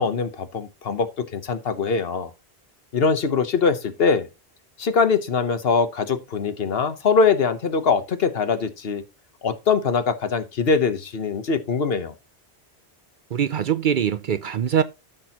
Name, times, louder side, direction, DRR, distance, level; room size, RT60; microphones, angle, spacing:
voice 1, 0.0-2.3 2.9-4.3 4.8-9.0 9.4-12.1, left 5 dB, 65° left, 1.2 m, -22 dB
voice 2, 13.3-14.8, right 8 dB, 55° right, 0.6 m, -22 dB
13.0 x 6.1 x 2.8 m
omnidirectional pair, 1.1 m